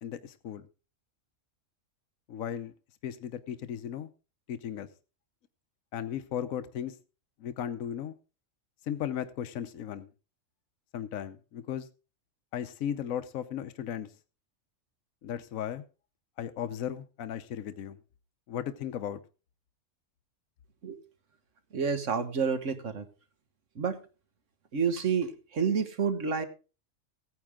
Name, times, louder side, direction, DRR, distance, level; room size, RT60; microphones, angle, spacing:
voice 1, 0.0-0.7 2.3-2.7 3.0-4.1 4.5-4.9 5.9-7.0 7.4-8.1 8.8-10.1 10.9-11.9 12.5-14.1 15.2-15.8 16.4-18.0 18.5-19.2, left 9 dB, 80° left, 1.2 m, -36 dB
voice 2, 21.7-23.1 23.7-24.0 24.7-26.4, right 6 dB, 65° right, 1.7 m, -29 dB
16.0 x 9.4 x 3.6 m
omnidirectional pair, 1.4 m